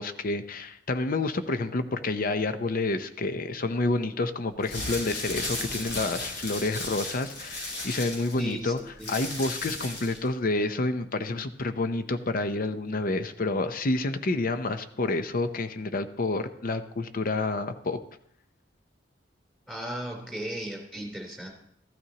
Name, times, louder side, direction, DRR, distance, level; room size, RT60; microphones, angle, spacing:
voice 1, 0.0-8.8 9.1-18.0, left 2 dB, 50° left, 9 dB, 0.7 m, -29 dB
sound 1, 4.5-10.3, left 2 dB, 75° left, 5.3 m, -35 dB
voice 2, 8.4-9.1 19.7-21.5, right 1 dB, 5° left, -1 dB, 3.5 m, -36 dB
15.0 x 12.5 x 2.9 m, 0.70 s
head